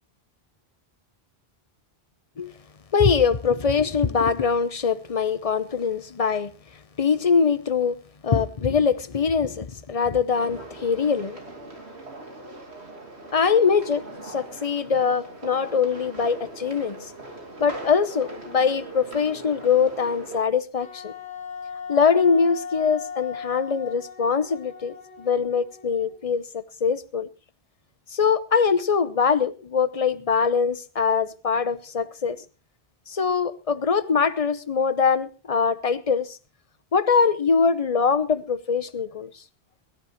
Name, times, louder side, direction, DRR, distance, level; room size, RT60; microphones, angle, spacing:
voice 1, 2.9-6.5 7.0-11.4 13.3-17.1 17.6-21.1 21.9-27.3 28.1-32.4 33.1-36.4 36.9-39.3, left 6 dB, 35° left, 0.8 m, -23 dB
sound 1, 10.4-20.4, right 2 dB, 85° right, 2.9 m, -40 dB
Wind instrument woodwind instrument, 20.8-26.3, left 6 dB, 80° left, 2.8 m, -38 dB
22.5 x 12.5 x 3.0 m
omnidirectional pair, 1.1 m